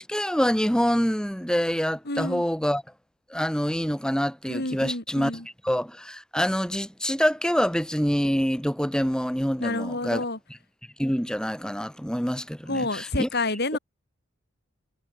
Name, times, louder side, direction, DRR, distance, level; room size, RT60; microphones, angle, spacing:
voice 1, 0.0-2.8 3.3-5.3 5.6-10.2 11.0-13.3, equal, 5° left, 6.2 m, -26 dB
voice 2, 2.1-2.4 4.5-5.5 9.6-10.4 12.7-13.8, left 2 dB, 55° left, 5.6 m, -29 dB
head